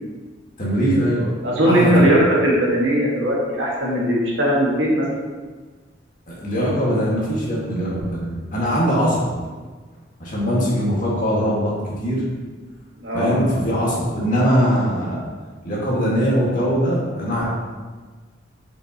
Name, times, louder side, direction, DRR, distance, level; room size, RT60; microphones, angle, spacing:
voice 1, 0.6-1.3 1.6-2.1 6.3-9.3 10.2-12.2 13.1-15.2 15.6-17.4, equal, 45° left, -6 dB, 1.7 m, -21 dB
voice 2, 1.4-5.1 13.0-13.4, equal, 90° right, -4 dB, 1.7 m, -18 dB
6.7 x 5.2 x 2.9 m, 1.4 s
head